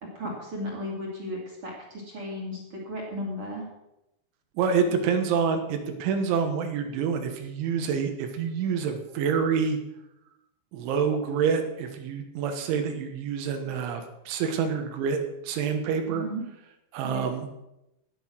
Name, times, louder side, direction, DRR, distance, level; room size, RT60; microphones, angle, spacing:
voice 1, 0.0-3.7 16.1-16.4 17.0-17.3, equal, 40° right, -2 dB, 2.4 m, -35 dB
voice 2, 4.6-9.8 10.7-16.3 16.9-17.5, right 6 dB, 85° right, 6 dB, 3.7 m, -27 dB
18.5 x 6.3 x 6.3 m, 0.89 s
omnidirectional pair, 5.4 m